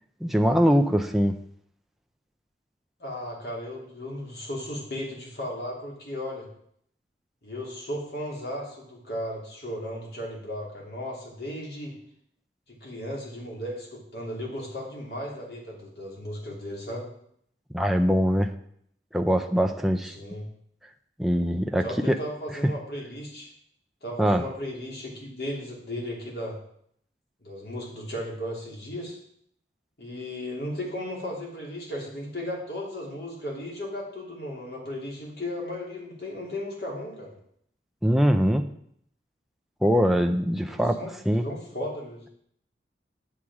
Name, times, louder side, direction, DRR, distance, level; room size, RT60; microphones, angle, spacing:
voice 1, 0.2-1.3 17.7-18.5 19.1-20.2 21.2-22.2 24.2-24.4 38.0-38.7 39.8-41.0 41.3-41.4, equal, ahead, 4 dB, 0.4 m, -22 dB
voice 2, 3.0-6.5 7.4-11.9 12.7-17.1 20.0-20.5 21.8-23.5 24.0-26.6 27.4-29.2 30.0-37.3 40.7-41.1 41.4-42.2, left 1 dB, 60° left, -2 dB, 2.7 m, -35 dB
8.6 x 7.4 x 4.8 m, 0.68 s
head